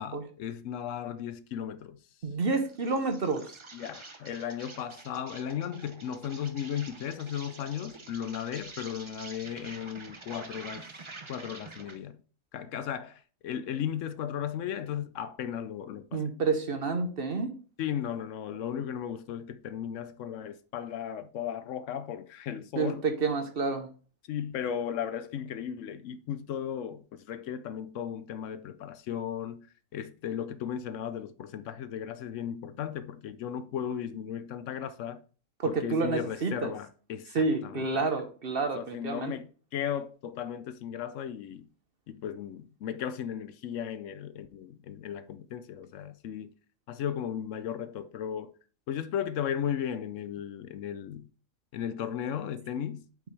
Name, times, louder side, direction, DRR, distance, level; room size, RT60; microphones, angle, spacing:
voice 1, 0.0-2.0 3.7-10.9 11.3-12.2 12.5-16.2 17.8-23.1 24.3-29.7 29.9-35.2 35.6-37.9 38.7-39.5 39.7-41.7 42.1-46.5 46.9-48.5 48.9-51.3 51.7-53.1, left 9 dB, 70° left, 0.9 m, -36 dB
voice 2, 2.2-3.5 16.1-17.5 22.8-23.9 35.6-36.7 37.3-39.3, right 4 dB, 50° right, 1.0 m, -29 dB
Insect, 2.7-12.0, right 3 dB, 30° right, 0.7 m, -47 dB
8.5 x 5.2 x 3.2 m
omnidirectional pair, 1.4 m